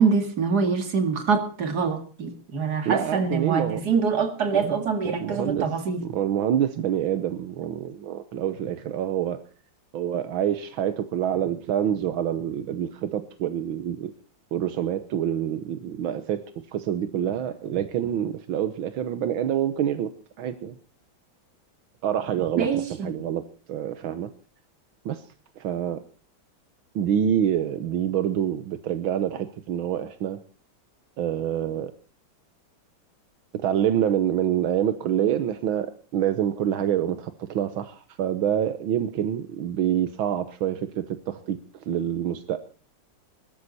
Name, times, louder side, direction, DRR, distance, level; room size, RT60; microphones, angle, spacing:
voice 1, 0.0-6.0 22.6-23.3, right 5 dB, 55° right, 2.6 m, -25 dB
voice 2, 2.8-3.9 4.5-4.7 5.0-5.7 6.0-9.4 9.9-14.1 14.5-16.4 16.7-20.1 20.4-20.8 22.0-23.4 23.7-24.3 25.0-25.2 25.6-26.0 26.9-30.4 31.2-31.9 33.5-42.6, right 10 dB, 85° right, 1.8 m, -26 dB
21.0 x 12.5 x 4.1 m
omnidirectional pair, 2.1 m